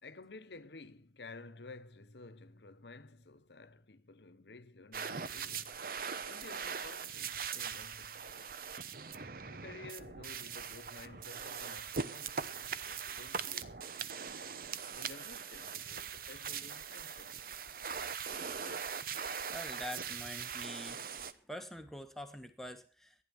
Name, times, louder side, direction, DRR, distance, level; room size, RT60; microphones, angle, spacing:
voice 1, 0.0-5.8 6.2-8.5 9.4-14.1 14.9-17.5, left 3 dB, 75° left, 1.0 m, -53 dB
sound 1, 4.9-21.3, right 6 dB, 55° right, 0.9 m, -41 dB
voice 2, 19.5-21.1 21.5-23.1, left 1 dB, ahead, 1.3 m, -45 dB
14.5 x 10.5 x 6.9 m
head